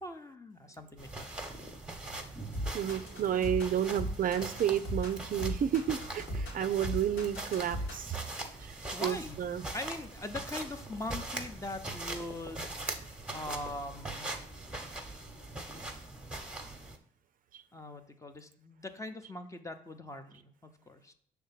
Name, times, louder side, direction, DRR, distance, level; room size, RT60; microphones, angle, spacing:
voice 1, 0.0-1.3 8.9-14.3 17.7-21.1, left 2 dB, 15° left, 8 dB, 0.8 m, -42 dB
sound 1, 1.0-17.0, right 2 dB, 5° right, 1.1 m, -42 dB
sound 2, 2.5-8.2, equal, 85° left, 2.1 m, -37 dB
voice 2, 2.7-8.2 8.6-9.6 17.5-17.6, right 9 dB, 50° right, 11 dB, 0.5 m, -31 dB
6.3 x 3.5 x 5.7 m, 0.62 s
supercardioid pair, 70°, 19 cm